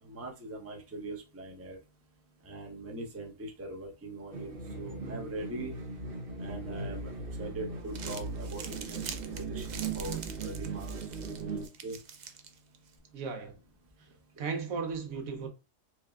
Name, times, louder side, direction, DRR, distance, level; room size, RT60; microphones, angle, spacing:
voice 1, 0.0-1.8 2.4-4.5 4.8-5.8 6.4-11.2 11.8-12.0 14.4-14.5, right 2 dB, 15° right, 0.6 m, -42 dB
sound 1, 4.3-11.7, right 3 dB, 50° right, 0.9 m, -38 dB
Crumpling crinkling, 7.7-13.0, right 6 dB, 65° right, 0.4 m, -46 dB
voice 2, 13.1-13.6 14.4-15.5, right 5 dB, 80° right, 1.2 m, -35 dB
4.6 x 2.2 x 3.4 m
omnidirectional pair, 1.4 m